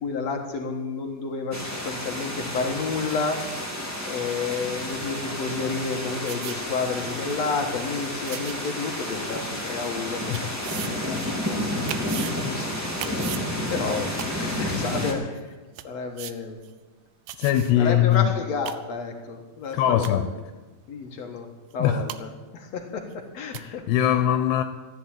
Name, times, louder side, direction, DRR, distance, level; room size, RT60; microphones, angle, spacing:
voice 1, 0.0-3.4 4.1-11.9 12.4-13.3 13.7-15.5 15.8-16.6 17.8-20.2 20.9-21.5 21.7-24.2, left 4 dB, 60° left, 1.9 m, -31 dB
sound 1, 1.5-15.1, left 1 dB, 5° right, 1.4 m, -31 dB
sound 2, 6.3-6.6 7.1-7.2 8.3-8.6 9.4-9.5 10.3-10.9 11.2-11.3 11.9-12.3 13.0-13.5 14.2-14.3 15.0-15.1 15.4-15.5 15.8-15.9 16.2-16.3 16.6-16.7 17.3-17.7 18.1-18.2 18.5-18.8 19.7-19.8 20.0-20.3 21.7-21.8 22.1-22.2 23.1-23.2 23.5-23.6, right 14 dB, 80° right, 2.8 m, -36 dB
voice 2, 17.4-18.3 19.7-20.3 21.8-22.0 23.5-24.6, left 11 dB, 85° left, 2.9 m, -22 dB
14.0 x 11.0 x 8.8 m
omnidirectional pair, 4.7 m